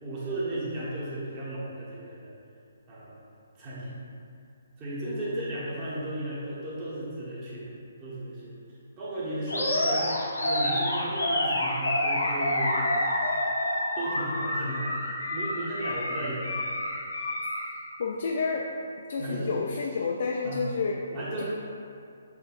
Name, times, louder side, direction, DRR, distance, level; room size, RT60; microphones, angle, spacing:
voice 1, 0.0-2.3 2.9-3.1 3.6-4.0 4.8-7.7 8.0-8.5 9.0-10.1 10.4-12.8 13.9-14.9 15.3-16.6 19.2-19.5 20.4-20.6 21.1-21.4, right 1 dB, 30° right, -9 dB, 1.4 m, -35 dB
Animal, 9.5-17.7, left 1 dB, 90° left, 0.9 m, -28 dB
voice 2, 18.0-18.7 19.1-21.1 21.4-21.5, left 4 dB, 60° left, -1 dB, 0.4 m, -30 dB
6.6 x 3.0 x 2.5 m, 2.4 s
figure-of-eight pair, 140°, 0 cm